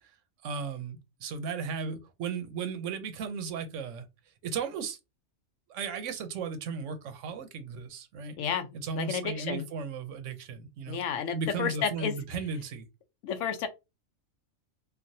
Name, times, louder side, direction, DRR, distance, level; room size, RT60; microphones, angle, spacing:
voice 1, 0.4-4.0 4.4-5.0 5.7-8.4 8.7-11.0 11.3-12.9, right 5 dB, 70° right, 0.9 m, -35 dB
voice 2, 8.4-9.7 10.9-12.1 13.2-13.7, left 7 dB, 70° left, 0.9 m, -31 dB
3.2 x 2.3 x 2.6 m
omnidirectional pair, 1.4 m